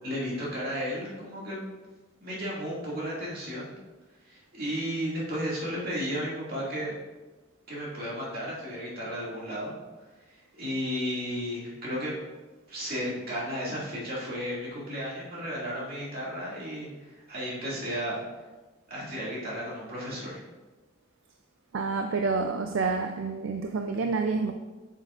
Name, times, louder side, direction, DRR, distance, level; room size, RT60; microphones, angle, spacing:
voice 1, 0.0-1.6 2.2-3.7 4.2-6.9 7.7-9.7 10.5-12.2 12.7-18.2 18.9-20.4, equal, 45° right, -6 dB, 2.2 m, -33 dB
voice 2, 21.7-24.5, right 4 dB, 65° right, 5 dB, 0.4 m, -28 dB
7.5 x 6.5 x 2.5 m, 1.2 s
head